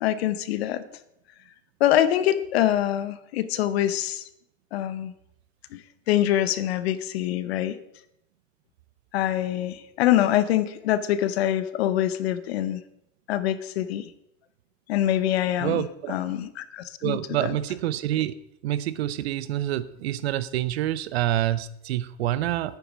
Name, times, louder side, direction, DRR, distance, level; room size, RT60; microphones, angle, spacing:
voice 1, 0.0-0.8 1.8-4.2 4.7-5.1 5.7-5.8 6.1-7.8 9.1-12.8 13.3-14.1 14.9-17.2, left 12 dB, 55° left, 13 dB, 0.8 m, -24 dB
voice 2, 15.6-16.2 17.0-18.4 18.6-22.8, right 13 dB, 55° right, 17 dB, 0.6 m, -27 dB
10.0 x 9.4 x 5.1 m, 0.79 s
supercardioid pair, 170°, 39 cm